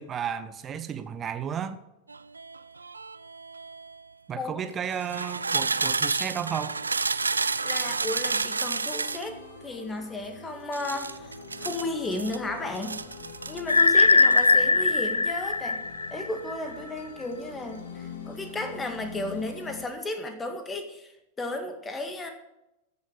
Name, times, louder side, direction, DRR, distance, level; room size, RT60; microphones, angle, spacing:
voice 1, 0.0-1.8 4.3-6.8, right 8 dB, 25° right, 11 dB, 1.1 m, -33 dB
sound 1, 2.1-4.0 4.8-9.3 10.7-12.4 12.7-13.9 14.2-14.5, right 4 dB, 80° right, 0.4 m, -30 dB
voice 2, 7.6-9.4 9.6-11.3 11.6-13.0 13.5-15.8 16.1-22.3, left 2 dB, 15° left, 6 dB, 1.9 m, -34 dB
sound 2, 9.0-19.9, left 4 dB, 65° left, 2.3 m, -44 dB
sound 3, 13.7-16.5, left 3 dB, 80° left, 0.4 m, -20 dB
15.0 x 7.1 x 6.6 m, 0.90 s
figure-of-eight pair, 90°, 0 cm